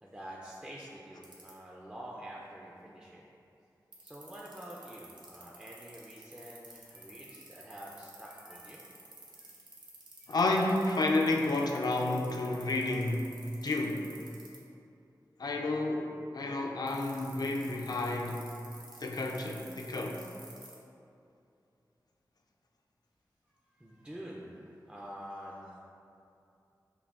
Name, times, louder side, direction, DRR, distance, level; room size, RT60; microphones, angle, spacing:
voice 1, 0.0-3.2 4.0-8.9 9.3-9.5 10.2-10.4 12.4-12.7 13.0-13.1 23.7-25.8, equal, 10° right, -4 dB, 0.4 m, -47 dB
sound 1, 1.2-1.5 3.9-14.6 16.9-20.8, right 3 dB, 85° right, 0.6 m, -51 dB
voice 2, 10.3-13.3 13.6-14.2 15.4-18.4 19.0-20.2, left 2 dB, 60° left, 1 dB, 0.4 m, -30 dB
5.7 x 2.2 x 2.4 m, 2.7 s
wide cardioid pair, 55°, 8 cm